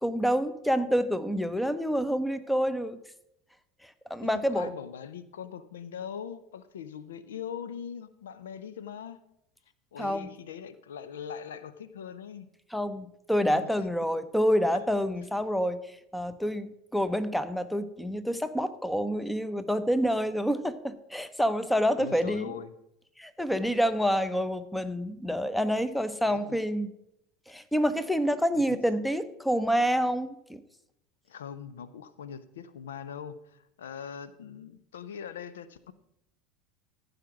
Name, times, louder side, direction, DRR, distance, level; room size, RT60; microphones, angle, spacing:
voice 1, 0.0-3.0 3.8-4.7 10.0-10.3 12.7-22.5 23.2-26.9 27.5-30.6, equal, 5° left, 14 dB, 0.8 m, -28 dB
voice 2, 4.2-9.2 9.9-12.5 13.5-13.9 14.7-14.8 22.0-22.8 26.3-26.6 28.5-28.8 31.3-35.9, left 8 dB, 75° left, 14 dB, 0.5 m, -41 dB
14.5 x 5.0 x 6.0 m, 0.81 s
figure-of-eight pair, 75°, 0 cm